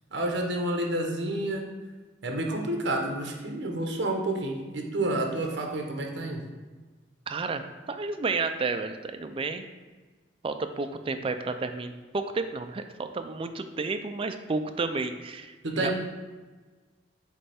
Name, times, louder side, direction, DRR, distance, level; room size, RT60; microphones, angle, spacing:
voice 1, 0.1-1.7 2.2-6.4 15.6-15.9, right 1 dB, 65° right, 2 dB, 1.0 m, -29 dB
voice 2, 7.3-9.6 10.4-15.9, right 3 dB, 30° right, 8 dB, 0.4 m, -31 dB
8.2 x 3.3 x 3.5 m, 1.3 s
head